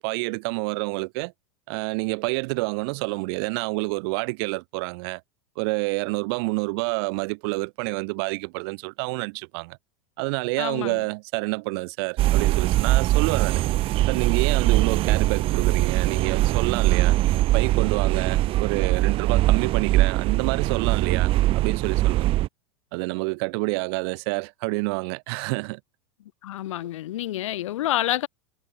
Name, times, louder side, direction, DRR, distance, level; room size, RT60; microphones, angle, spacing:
voice 1, 0.0-1.3 1.7-5.2 5.6-9.8 10.2-13.6 14.1-17.2 17.5-22.2 22.9-25.8, right 30 dB, 55° right, 3.0 m, -28 dB
voice 2, 10.6-11.0 26.4-28.3, left 14 dB, 80° left, 4.3 m, -28 dB
sound 1, 12.2-22.5, right 16 dB, 35° right, 2.2 m, -22 dB
supercardioid pair, 145°, 16 cm